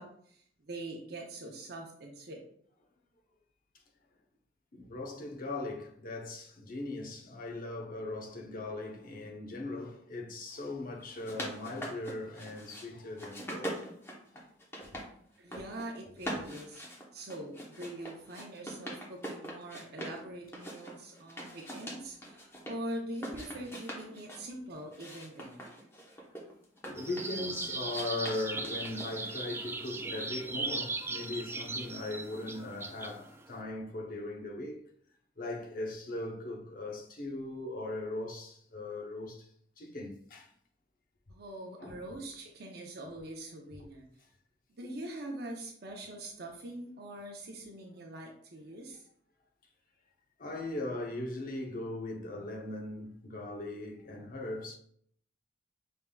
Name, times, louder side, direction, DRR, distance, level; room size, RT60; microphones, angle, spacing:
voice 1, 0.0-2.4 15.4-16.8 17.1-25.7 41.3-44.1 44.8-49.1, right 1 dB, 60° right, 0.7 m, -43 dB
voice 2, 4.7-13.9 14.3-14.5 21.4-21.6 22.4-22.5 26.8-34.8 35.4-39.5 39.8-40.5 41.8-42.0 50.4-54.8, left 2 dB, 50° left, 0.8 m, -39 dB
sound 1, 11.0-12.9 13.2-15.1 15.4-15.9 16.2-20.2 20.5-22.8 23.1-24.4 24.9-27.4 27.9-29.4, equal, 15° left, 0.9 m, -43 dB
sound 2, 27.0-33.6, right 3 dB, 15° right, 0.3 m, -38 dB
5.5 x 3.5 x 2.3 m
head